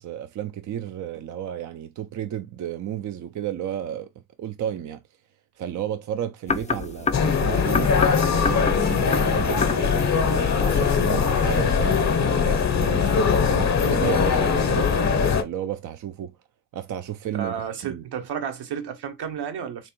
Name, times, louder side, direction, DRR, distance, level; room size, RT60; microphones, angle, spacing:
voice 1, 0.0-4.1 4.4-5.0 5.6-7.9 8.3-14.9 15.4-16.3 16.7-18.0, right 10 dB, 45° right, 0.5 m, -32 dB
sound 1, 6.5-11.7, left 5 dB, 15° left, 0.4 m, -30 dB
sound 2, 7.1-15.4, left 6 dB, 40° left, 0.8 m, -21 dB
voice 2, 17.3-19.9, right 8 dB, 65° right, 1.0 m, -32 dB
3.3 x 3.0 x 3.0 m
hypercardioid pair, 45°, 44 cm